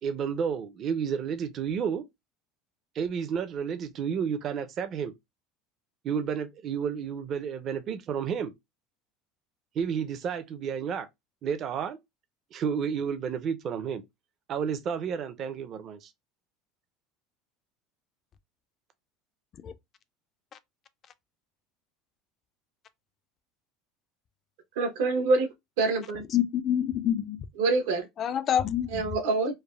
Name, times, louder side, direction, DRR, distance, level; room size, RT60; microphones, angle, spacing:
voice 1, 0.0-2.0 2.9-5.1 6.0-8.5 9.7-11.1 11.4-12.0 12.5-14.0 14.5-16.1, right 7 dB, 45° right, 0.4 m, -31 dB
voice 2, 24.8-25.5 25.8-26.2 27.6-28.1 28.9-29.5, right 3 dB, 85° right, 0.7 m, -25 dB
voice 3, 26.3-27.5 28.2-29.1, left 10 dB, 40° left, 0.3 m, -27 dB
3.2 x 2.1 x 2.3 m
supercardioid pair, 115°, 0 cm